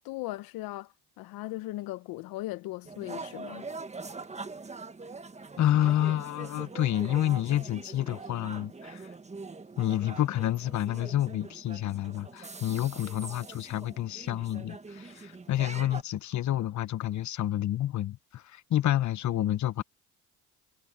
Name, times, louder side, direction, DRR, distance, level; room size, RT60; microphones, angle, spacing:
voice 1, 0.0-3.7, left 18 dB, 80° left, 0.8 m, -38 dB
sound 1, 2.9-16.0, right 3 dB, 20° right, 1.5 m, -43 dB
voice 2, 5.6-9.1 9.8-19.8, left 12 dB, 55° left, 1.0 m, -29 dB
supercardioid pair, 80°, 35 cm